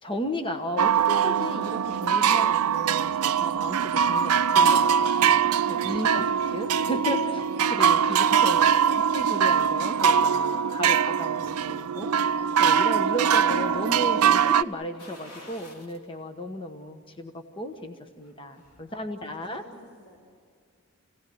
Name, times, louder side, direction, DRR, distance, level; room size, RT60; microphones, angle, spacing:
voice 1, 0.0-5.1 5.7-6.3 6.5-8.6 9.1-12.1 12.6-19.6, equal, 25° left, 6 dB, 1.2 m, -34 dB
sound 1, 0.8-14.6, right 7 dB, 75° right, 0.6 m, -22 dB
voice 2, 8.3-8.7 18.9-19.7 20.0-20.2, left 1 dB, 50° left, -1 dB, 5.2 m, -52 dB
sound 2, 15.0-16.1 16.5-16.6 18.1-18.9 19.2-19.3, left 2 dB, 80° left, 3.3 m, -48 dB
28.5 x 17.5 x 9.5 m, 2.2 s
head